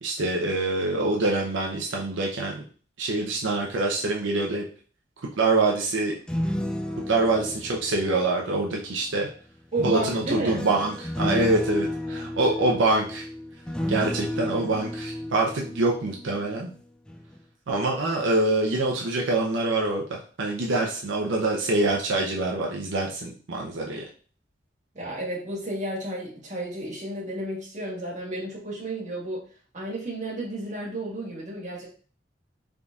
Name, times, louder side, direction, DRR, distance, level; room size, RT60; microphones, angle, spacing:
voice 1, 0.0-2.6 3.0-4.6 5.4-6.2 7.1-9.3 9.8-13.3 13.9-16.7 17.7-24.0, right 2 dB, 85° right, -1 dB, 0.6 m, -25 dB
sound 1, 6.1-9.0 9.8-16.7 17.1-17.4, left 1 dB, 5° left, 0.3 m, -32 dB
voice 2, 9.7-10.6 24.9-29.5 29.7-31.9, right 1 dB, 40° right, -3 dB, 1.6 m, -32 dB
3.9 x 3.6 x 2.4 m, 0.41 s
head